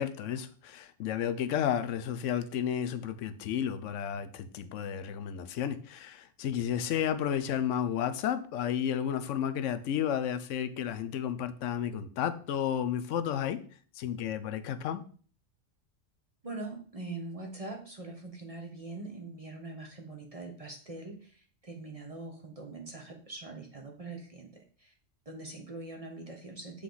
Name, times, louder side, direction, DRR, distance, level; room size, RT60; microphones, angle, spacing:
voice 1, 0.0-13.6 14.0-15.0, left 9 dB, 80° left, 0.9 m, -32 dB
voice 2, 16.4-24.9 25.2-26.8, right 2 dB, 30° right, 1.0 m, -43 dB
7.6 x 3.5 x 3.9 m
omnidirectional pair, 1.3 m